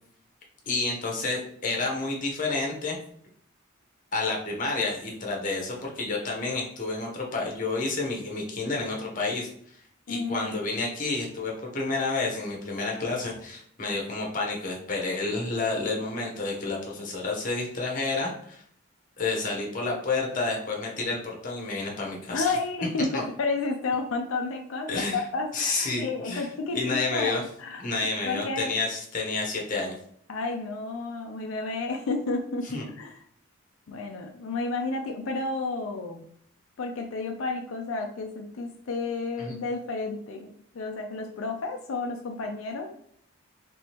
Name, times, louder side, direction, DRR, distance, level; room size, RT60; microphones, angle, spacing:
voice 1, 0.7-3.0 4.1-9.5 10.1-18.6 19.2-22.5 23.1-23.2 24.9-25.2 25.5-26.5 26.7-27.4 27.8-29.9 32.7-32.8 39.4-39.5, left 3 dB, 40° left, -1 dB, 0.9 m, -30 dB
voice 2, 10.1-10.6 22.3-28.8 30.3-33.2 33.9-36.2 36.8-42.9, left 3 dB, 80° left, 3 dB, 0.5 m, -31 dB
3.4 x 3.4 x 2.9 m, 0.64 s
head